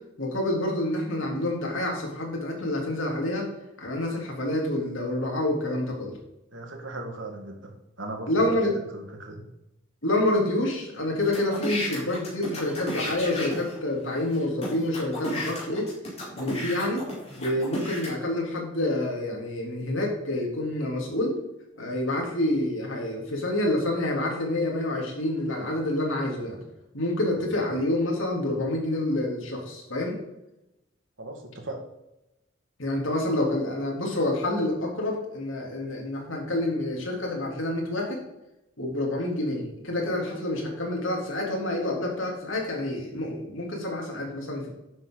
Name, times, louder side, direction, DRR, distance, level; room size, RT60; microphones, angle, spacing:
voice 1, 0.2-3.5 3.8-6.2 8.3-8.7 10.0-15.9 16.4-17.0 17.4-21.4 21.8-26.6 26.9-30.2 32.8-38.2 38.8-44.7, left 1 dB, 80° left, -1 dB, 3.3 m, -28 dB
voice 2, 6.5-9.5 27.6-27.7 31.2-31.8, right 2 dB, 70° right, 3 dB, 2.0 m, -38 dB
sound 1, 11.2-13.8 14.3-14.4 14.6-18.1, equal, 30° left, 4.2 m, -33 dB
11.5 x 7.6 x 4.0 m, 0.91 s
head